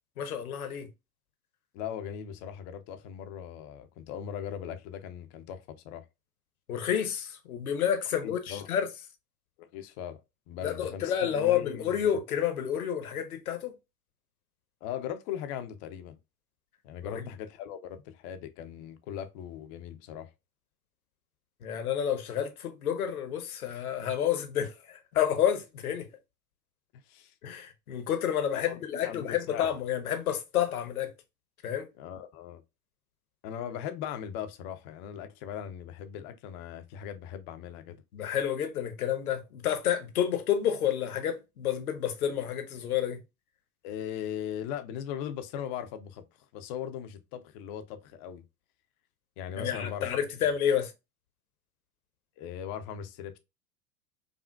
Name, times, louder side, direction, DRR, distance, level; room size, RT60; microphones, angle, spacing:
voice 1, 0.2-0.9 6.7-8.9 10.6-13.7 17.0-17.2 21.6-26.1 27.4-31.1 31.6-31.9 38.1-43.2 49.6-50.9, left 9 dB, 65° left, 0.8 m, -29 dB
voice 2, 1.7-6.0 8.2-8.7 9.6-10.2 10.5-12.0 14.8-16.2 16.8-20.3 27.1-27.3 28.5-29.7 32.0-32.6 33.4-38.0 43.8-46.3 46.5-48.4 49.4-50.2 52.4-53.4, left 9 dB, 30° left, 0.5 m, -39 dB
5.0 x 2.4 x 2.2 m
figure-of-eight pair, 85°, 46 cm